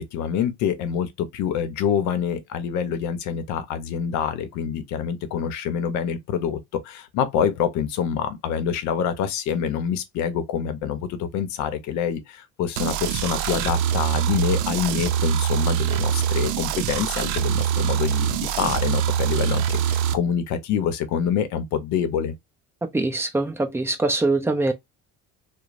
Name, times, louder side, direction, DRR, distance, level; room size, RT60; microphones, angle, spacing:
voice 1, 0.0-6.6 6.8-22.3, left 8 dB, 70° left, 0.7 m, -26 dB
sound 1, 12.8-20.1, right 9 dB, 85° right, 0.5 m, -24 dB
voice 2, 22.8-24.7, right 2 dB, 10° right, 0.5 m, -23 dB
2.9 x 2.1 x 2.4 m
cardioid pair, 125°, 30 cm